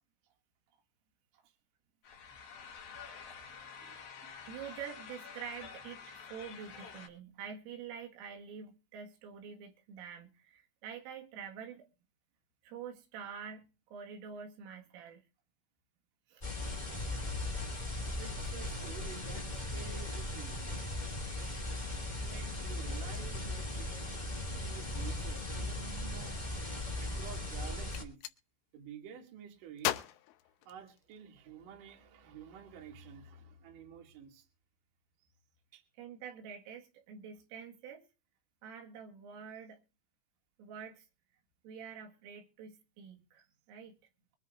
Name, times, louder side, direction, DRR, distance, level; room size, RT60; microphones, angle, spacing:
sound 1, 2.0-7.1, left 6 dB, 55° left, 3.6 m, -49 dB
voice 1, 4.2-11.9 12.6-15.2 16.3-16.4 36.0-38.1 38.6-39.8 40.6-41.1 41.6-43.9, right 7 dB, 85° right, 4.5 m, -47 dB
sound 2, 16.4-28.0, left 2 dB, 20° left, 1.0 m, -38 dB
voice 2, 16.9-17.4 18.2-20.6 22.1-24.1 24.6-26.4 27.0-28.2 28.7-30.1 30.7-34.5 35.7-35.8, right 7 dB, 50° right, 3.5 m, -50 dB
Gunshot gunfire, 27.9-28.4 29.8-31.3, left 14 dB, 85° left, 3.5 m, -37 dB
24.0 x 10.5 x 2.6 m
omnidirectional pair, 5.7 m